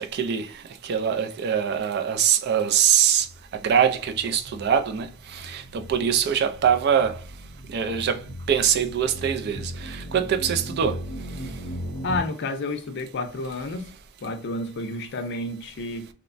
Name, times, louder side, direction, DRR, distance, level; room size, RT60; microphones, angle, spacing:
voice 1, 0.0-3.3 3.5-7.2 7.7-8.2 8.5-11.0, right 8 dB, 50° right, 0.3 m, -23 dB
sound 1, 3.1-12.2, equal, 65° right, 0.9 m, -38 dB
voice 2, 12.0-13.9 14.2-16.1, left 2 dB, 55° left, 0.4 m, -30 dB
3.0 x 2.1 x 2.5 m
head